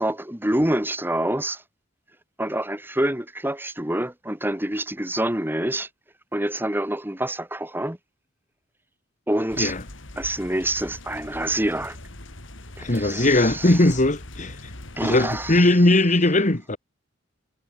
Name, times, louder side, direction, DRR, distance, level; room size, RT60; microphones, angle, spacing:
voice 1, 0.0-1.6 2.4-5.9 6.3-8.0 9.3-9.8 10.2-12.0 12.8-13.9 15.0-15.7, right 1 dB, 10° right, 3.5 m, -26 dB
sound 1, 9.5-15.6, left 1 dB, 65° left, 3.6 m, -41 dB
voice 2, 12.8-14.6 15.0-16.8, left 2 dB, 40° left, 1.7 m, -19 dB
head